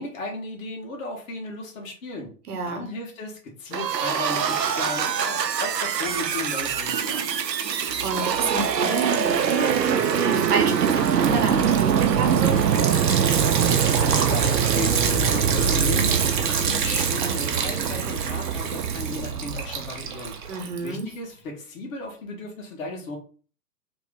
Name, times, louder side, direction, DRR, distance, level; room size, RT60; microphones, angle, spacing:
voice 1, 0.0-2.3 2.6-7.3 13.7-20.3 20.8-23.2, left 2 dB, 55° left, -1 dB, 1.4 m, -35 dB
voice 2, 2.5-2.9 7.7-12.7 20.5-21.1, right 4 dB, 65° right, 5 dB, 1.0 m, -29 dB
sound 1, 3.7-20.3, right 7 dB, 90° right, 0.5 m, -24 dB
Liquid, 4.0-4.6 5.0-21.1, right 6 dB, 35° right, 0.5 m, -30 dB
3.0 x 2.9 x 3.6 m, 0.39 s
figure-of-eight pair, 110°, 48 cm